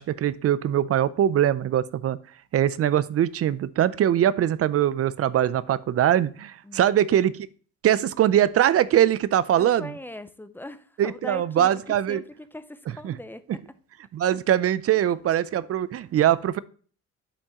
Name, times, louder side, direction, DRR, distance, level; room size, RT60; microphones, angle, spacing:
voice 1, 0.0-2.2 2.5-7.3 7.8-9.9 11.0-12.2 13.0-13.2 14.1-16.6, right 11 dB, 50° right, 0.5 m, -22 dB
voice 2, 9.6-13.6 14.9-15.1, left 1 dB, 5° left, 0.5 m, -40 dB
8.4 x 5.4 x 2.9 m
cardioid pair, 90°, 30 cm